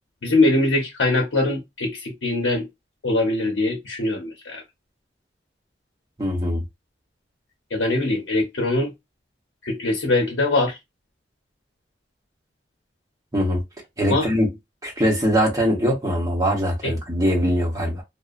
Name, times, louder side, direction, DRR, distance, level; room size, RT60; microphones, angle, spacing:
voice 1, 0.2-2.7 3.0-4.6 7.7-8.9 9.6-10.8 14.1-14.3 16.8-16.9, left 2 dB, 85° left, 0.7 m, -22 dB
voice 2, 6.2-6.6 13.3-13.6 14.0-14.5 14.8-18.0, equal, 20° right, 0.9 m, -22 dB
2.6 x 2.1 x 2.4 m
head